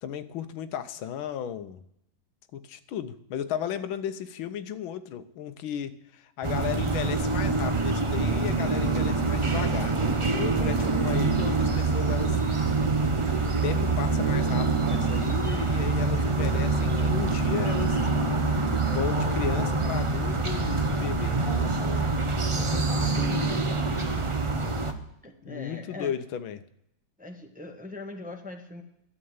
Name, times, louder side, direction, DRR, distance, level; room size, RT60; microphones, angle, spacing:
voice 1, 0.0-1.8 2.5-12.4 13.0-13.1 13.4-18.3 18.8-21.8 25.4-26.6, left 9 dB, 90° left, 11 dB, 1.6 m, -35 dB
sound 1, 6.4-24.9, right 3 dB, 45° right, 0.4 m, -25 dB
voice 2, 22.4-22.9 23.1-23.7 25.2-26.1 27.2-28.8, left 1 dB, 5° right, 4 dB, 1.0 m, -40 dB
12.5 x 7.7 x 9.4 m, 0.77 s
omnidirectional pair, 2.1 m